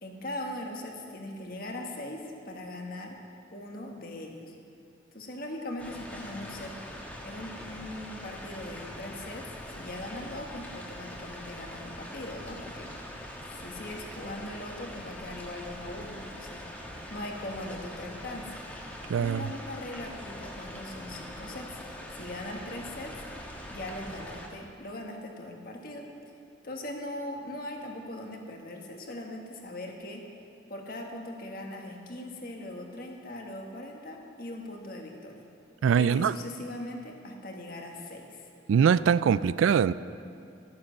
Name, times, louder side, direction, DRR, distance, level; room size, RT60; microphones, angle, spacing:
voice 1, 0.0-3.2 3.5-4.5 5.1-6.8 7.2-12.9 13.5-16.7 17.1-18.6 19.2-21.8 22.1-23.2 23.7-26.1 26.6-30.2 30.7-35.4 35.9-38.5, left 1 dB, 50° left, 1 dB, 1.5 m, -40 dB
sound 1, 5.8-24.5, equal, 10° left, 1.3 m, -43 dB
voice 2, 19.1-19.4 35.8-36.3 38.7-39.9, right 7 dB, 90° right, 18 dB, 0.3 m, -22 dB
13.5 x 9.6 x 6.4 m, 2.5 s
head